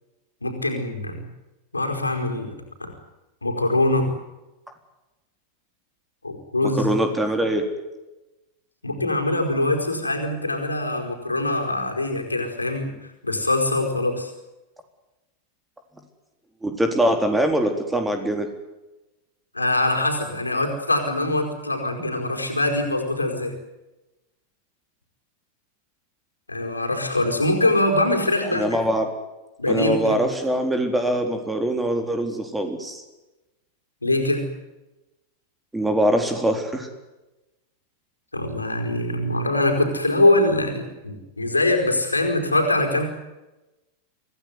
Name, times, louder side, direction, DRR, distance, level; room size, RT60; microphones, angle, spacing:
voice 1, 0.4-1.2 1.7-2.5 2.8-2.9 3.4-4.1 6.2-6.9 8.8-12.9 13.2-14.3 19.5-23.5 26.5-28.9 29.6-30.2 34.0-34.5 38.3-43.0, left 2 dB, 80° left, 4 dB, 4.7 m, -23 dB
voice 2, 6.7-7.7 16.6-18.5 28.5-29.0 29.7-33.0 35.7-36.9, right 1 dB, 5° right, 6 dB, 3.9 m, -23 dB
25.5 x 17.0 x 9.7 m, 1.0 s
figure-of-eight pair, 90°, 0 cm